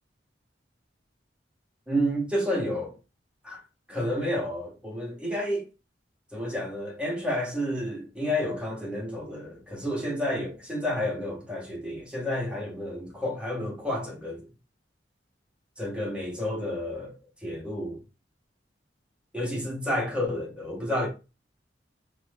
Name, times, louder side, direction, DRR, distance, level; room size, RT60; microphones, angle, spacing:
voice 1, 1.9-3.0 3.4-3.6 3.9-5.6 6.3-14.5 15.8-17.1 17.4-18.0 19.3-21.1, equal, 5° right, 0.7 m, -30 dB
3.2 x 2.1 x 3.1 m
head